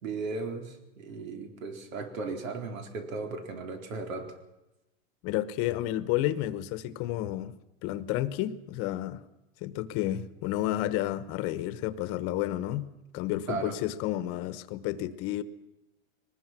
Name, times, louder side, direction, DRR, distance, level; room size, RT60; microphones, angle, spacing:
voice 1, 0.0-4.4 13.5-13.8, right 4 dB, 90° right, 6 dB, 4.3 m, -36 dB
voice 2, 5.2-7.5 7.8-9.2 9.6-15.4, left 14 dB, 35° left, 15 dB, 1.1 m, -31 dB
22.0 x 20.0 x 6.1 m, 0.94 s
supercardioid pair, 150°, 39 cm